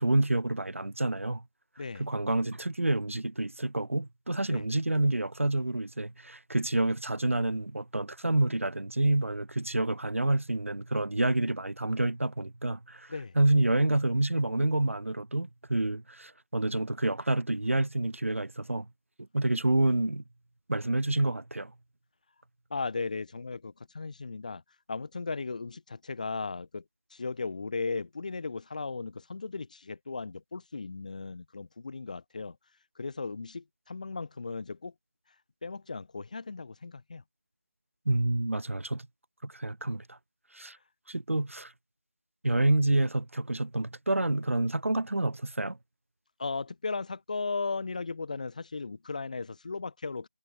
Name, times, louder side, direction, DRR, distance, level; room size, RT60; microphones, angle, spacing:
voice 1, 0.0-1.4 2.0-18.9 19.3-20.2 20.7-21.7 38.1-39.1 39.4-40.2 40.5-40.8 41.1-41.7 42.4-45.8, right 2 dB, 90° right, 0.4 m, -28 dB
voice 2, 22.7-24.6 24.9-26.8 27.1-32.6 32.9-34.9 35.6-37.2 46.4-50.3, left 4 dB, 35° left, 1.4 m, -36 dB
figure-of-eight pair, 165°, 7 cm